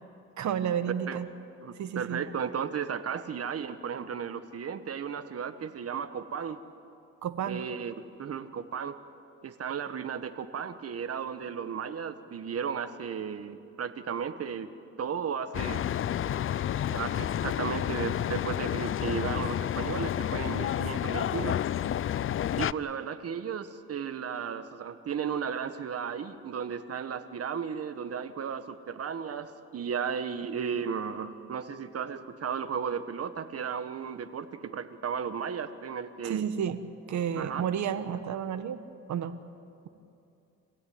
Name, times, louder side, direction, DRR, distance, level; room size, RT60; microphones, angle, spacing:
voice 1, 0.4-1.3 1.7-2.2 7.2-7.6 16.4-16.5 36.2-36.8 37.1-38.8 39.1-39.4, right 8 dB, 70° right, 10 dB, 1.5 m, -31 dB
voice 2, 1.6-6.6 7.5-9.0 9.4-14.7 15.0-15.8 16.9-21.6 22.6-36.4 37.4-37.6, right 7 dB, 50° right, 10 dB, 1.5 m, -35 dB
sound 1, 15.5-22.7, left 10 dB, 45° left, 0.5 m, -30 dB
26.5 x 17.0 x 9.6 m, 2.7 s
cardioid pair, 90°, 30 cm